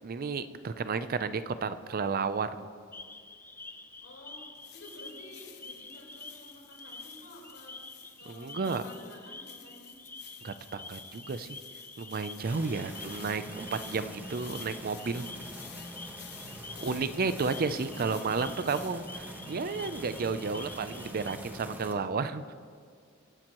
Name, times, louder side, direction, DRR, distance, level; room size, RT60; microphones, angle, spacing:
voice 1, 0.0-2.7 8.3-8.8 10.4-11.6 12.0-15.3 16.8-22.5, right 4 dB, 45° right, 12 dB, 0.5 m, -32 dB
sound 1, 2.9-21.4, left 3 dB, 10° left, 0.5 m, -48 dB
voice 2, 4.0-4.4 4.7-7.8 8.2-9.9 16.7-17.5, left 1 dB, 80° left, -3 dB, 4.2 m, -51 dB
sound 2, 4.6-19.5, left 9 dB, 55° left, 1.2 m, -52 dB
sound 3, 12.4-21.9, right 1 dB, 10° right, 1.2 m, -44 dB
23.0 x 10.5 x 3.0 m, 2.1 s
head